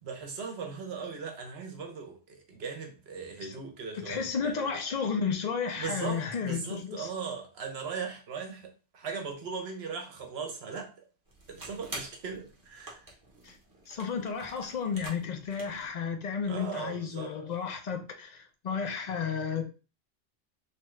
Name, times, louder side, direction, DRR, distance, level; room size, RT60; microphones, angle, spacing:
voice 1, 0.0-4.7 5.8-10.9 11.5-13.0 16.5-17.3, right 5 dB, 65° right, 0.9 m, -38 dB
voice 2, 3.9-7.1 13.4-13.6 13.9-19.6, left 6 dB, 55° left, 0.5 m, -33 dB
sound 1, 11.3-15.9, right 2 dB, 20° right, 0.8 m, -47 dB
2.9 x 2.3 x 3.0 m
omnidirectional pair, 1.2 m